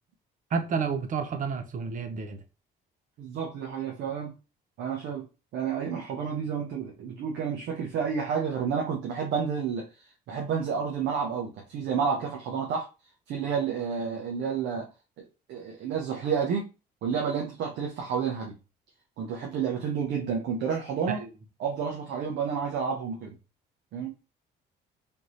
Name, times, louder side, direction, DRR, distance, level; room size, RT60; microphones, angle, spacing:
voice 1, 0.5-2.4 21.1-21.3, right 5 dB, 45° right, 0.8 m, -30 dB
voice 2, 3.2-4.3 4.8-5.3 5.5-12.9 13.3-14.9 15.2-16.7 17.0-18.5 19.2-21.2 21.6-23.3 23.9-24.1, right 6 dB, 75° right, 1.0 m, -30 dB
3.6 x 3.1 x 4.0 m
cardioid pair, 120°, 18 cm